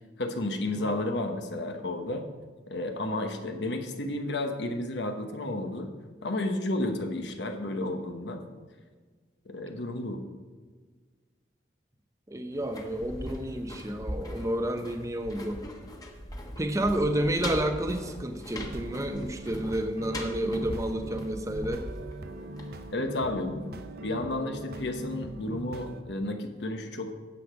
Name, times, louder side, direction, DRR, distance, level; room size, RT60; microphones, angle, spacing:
voice 1, 0.2-2.3 2.7-5.9 6.2-8.4 9.5-10.2 22.9-27.1, left 2 dB, 75° left, 5 dB, 1.1 m, -32 dB
voice 2, 12.3-15.6 16.6-21.8, right 1 dB, 20° right, 6 dB, 0.7 m, -30 dB
sound 1, 12.5-23.3 23.6-23.7, left 1 dB, 20° left, 1.2 m, -40 dB
sound 2, 18.6-26.0, right 2 dB, 60° right, 0.6 m, -41 dB
9.8 x 7.5 x 5.1 m, 1.5 s
head